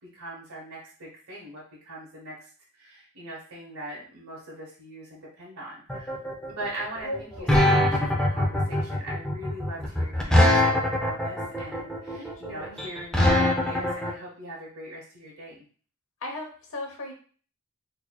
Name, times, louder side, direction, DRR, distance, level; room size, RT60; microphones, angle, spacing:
voice 1, 0.0-6.1 6.5-15.6, right 1 dB, 85° right, -5 dB, 1.1 m, -41 dB
sound 1, 5.9-14.1, left 1 dB, 5° left, 0.6 m, -22 dB
voice 2, 7.0-7.5 12.1-12.8 16.2-17.1, left 1 dB, 65° left, 2 dB, 0.9 m, -37 dB
4.4 x 2.9 x 2.3 m, 0.42 s
head